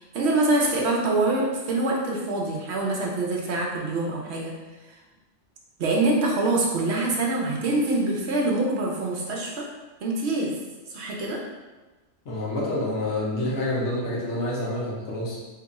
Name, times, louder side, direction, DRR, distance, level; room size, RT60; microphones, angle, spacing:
voice 1, 0.0-4.6 4.9-5.0 5.8-9.7 10.0-10.6 10.9-11.4, right 2 dB, 65° right, -1 dB, 0.9 m, -25 dB
voice 2, 12.2-15.4, left 1 dB, 70° left, -4 dB, 1.1 m, -28 dB
2.9 x 2.4 x 4.0 m, 1.2 s
omnidirectional pair, 1.3 m